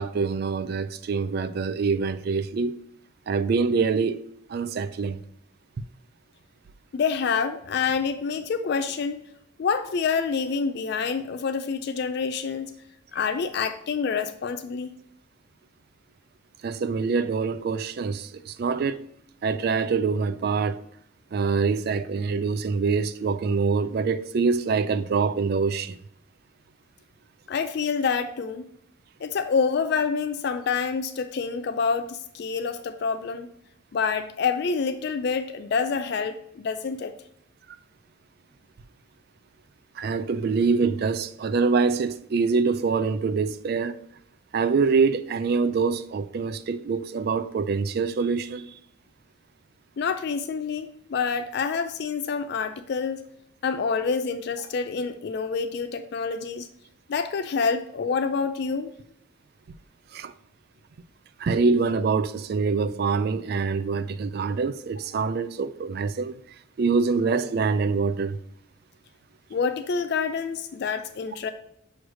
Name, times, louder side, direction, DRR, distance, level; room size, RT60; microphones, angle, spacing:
voice 1, 0.0-2.8 3.3-4.2 4.5-5.2 16.6-19.1 19.4-20.8 21.3-26.0 40.0-44.0 44.5-48.8 60.1-60.3 61.4-66.3 66.8-68.4, right 4 dB, 50° right, 0.3 m, -25 dB
voice 2, 6.9-9.2 9.6-12.7 13.1-14.9 27.5-28.6 29.2-33.5 33.9-37.1 50.0-53.2 53.6-56.7 57.1-58.9 69.5-71.5, left 5 dB, 50° left, 0.3 m, -27 dB
6.2 x 3.2 x 4.9 m
head